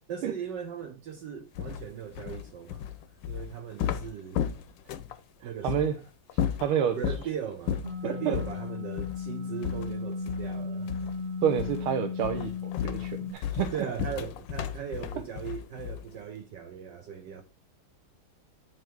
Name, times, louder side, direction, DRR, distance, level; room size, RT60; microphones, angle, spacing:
voice 1, 0.1-3.0 3.2-4.4 5.4-5.9 6.9-10.9 13.7-17.4, right 8 dB, 70° right, 1.2 m, -38 dB
sound 1, 1.6-5.2 5.7-5.9 6.3-7.3 7.7-8.0 8.3-8.6 9.0-9.2 9.6-10.6 10.9-11.2 11.6-11.9 12.2-16.2, left 9 dB, 70° left, 1.2 m, -33 dB
voice 2, 5.4-6.0 6.6-7.0 8.0-8.4 11.4-13.7, right 9 dB, 90° right, 1.6 m, -29 dB
sound 2, 7.8-13.3, left 5 dB, 30° right, 0.8 m, -35 dB
8.6 x 4.6 x 4.5 m
omnidirectional pair, 2.4 m